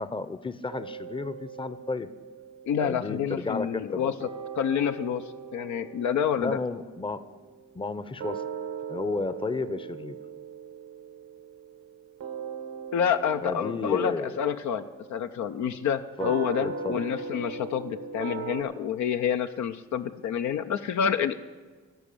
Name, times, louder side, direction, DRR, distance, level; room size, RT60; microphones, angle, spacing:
voice 1, 0.0-2.1 2.8-4.1 6.4-7.2 7.7-8.4 8.9-10.2 13.4-14.4 16.2-16.3 16.6-17.0, left 3 dB, 15° left, 13 dB, 0.7 m, -32 dB
sound 1, 0.7-3.9 4.2-18.6, right 6 dB, 75° right, 1.1 m, -40 dB
voice 2, 2.7-4.3 4.6-5.2 5.5-6.6 12.9-21.4, left 8 dB, 65° left, 8 dB, 0.6 m, -28 dB
13.5 x 5.2 x 8.3 m, 1.4 s
hypercardioid pair, 40°, 31 cm